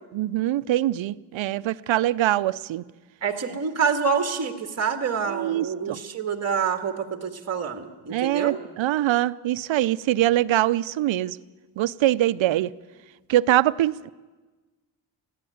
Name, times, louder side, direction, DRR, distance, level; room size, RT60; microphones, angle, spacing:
voice 1, 0.1-2.8 5.3-6.0 8.1-11.4 11.8-12.7 13.3-14.1, right 14 dB, 75° right, 0.6 m, -23 dB
voice 2, 3.2-8.6, right 6 dB, 35° right, 1.7 m, -27 dB
20.5 x 15.0 x 9.4 m
wide cardioid pair, 145°, 46 cm